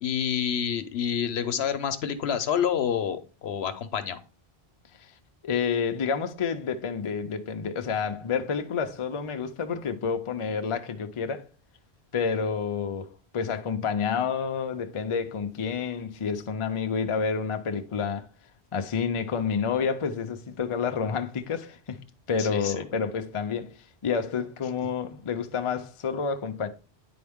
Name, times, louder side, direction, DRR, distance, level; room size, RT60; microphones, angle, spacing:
voice 1, 0.0-4.2 22.4-22.8 24.8-24.9, left 8 dB, 80° left, 1.0 m, -28 dB
voice 2, 5.4-11.5 12.1-18.3 18.7-22.0 22.3-23.7 24.0-26.7, left 6 dB, 40° left, 0.5 m, -29 dB
9.6 x 4.3 x 3.5 m
omnidirectional pair, 1.1 m